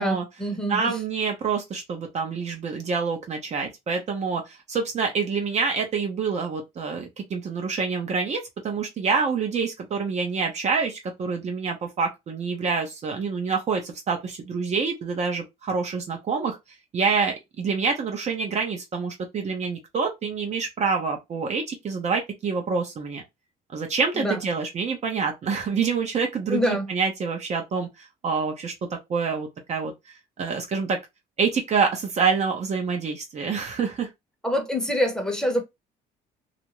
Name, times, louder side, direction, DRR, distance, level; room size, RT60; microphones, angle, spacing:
voice 1, 0.0-0.9 24.1-24.4 26.5-26.9 34.4-35.6, equal, 5° left, 0.8 m, -25 dB
voice 2, 0.7-4.4 4.7-16.6 16.9-23.2 23.7-27.9 28.2-28.7 29.1-29.9 30.4-31.0 31.4-34.1, right 5 dB, 40° right, 0.7 m, -26 dB
2.5 x 2.1 x 3.0 m
cardioid pair, 110°, 17 cm